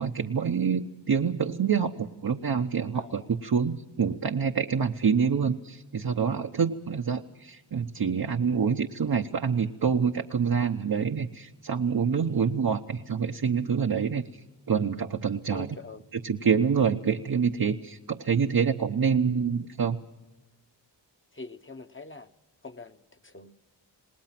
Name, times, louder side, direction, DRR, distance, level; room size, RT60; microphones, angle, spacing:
voice 1, 0.0-15.8 16.1-20.0, right 6 dB, 50° right, 3 dB, 1.0 m, -26 dB
voice 2, 2.9-3.3 12.2-12.5 15.5-16.0 21.3-22.3 22.6-23.5, left 3 dB, 25° left, 7 dB, 1.1 m, -44 dB
27.5 x 19.5 x 6.0 m, 1.1 s
wide cardioid pair, 75°, 45 cm